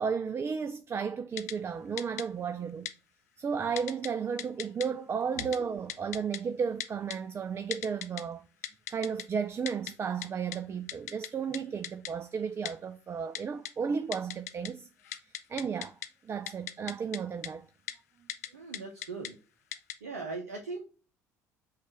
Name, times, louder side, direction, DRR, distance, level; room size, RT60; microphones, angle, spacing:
voice 1, 0.0-2.9 3.4-8.4 8.9-14.9 15.5-16.0 16.2-17.7, right 6 dB, 30° right, 0.4 m, -33 dB
Typing, 1.4-1.5 2.0-2.2 2.9-3.0 3.8-4.1 4.4-4.9 5.4-5.6 5.9-6.4 6.8-7.2 7.7-8.2 8.6-9.2 9.7-9.9 10.2-10.3 10.5-10.6 10.9-11.3 11.5-11.6 11.8-12.1 12.6-12.7 13.3-13.7 14.1-14.7 15.0-16.1 16.5-17.2 17.4-17.5 17.9-18.0 18.3-18.5 18.7-19.3 19.7-19.9, left 11 dB, 80° left, 0.4 m, -37 dB
voice 2, 18.5-19.4 20.0-20.8, right 3 dB, 85° right, 0.6 m, -39 dB
6.2 x 2.4 x 3.1 m
hypercardioid pair, 60°, 8 cm